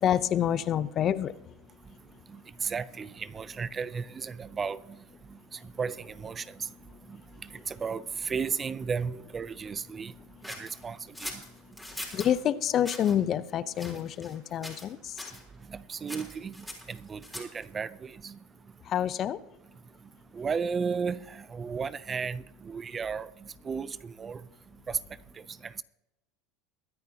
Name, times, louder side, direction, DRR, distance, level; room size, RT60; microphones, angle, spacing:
voice 1, 0.0-1.3 7.5-7.6 12.1-15.2 18.9-19.4, left 10 dB, 40° left, 0.7 m, -27 dB
voice 2, 2.6-4.8 5.8-6.5 7.7-10.1 10.5-11.4 15.7-16.5 16.9-18.4 20.3-23.3 23.6-24.4 24.9-25.0, right 5 dB, 25° right, 0.5 m, -34 dB
sound 1, 10.4-12.3 12.8-13.2 13.8-14.4 14.6-14.9 15.2-15.4 16.1-17.6, left 1 dB, 5° left, 3.7 m, -41 dB
23.0 x 9.4 x 2.9 m
supercardioid pair, 120°, 0 cm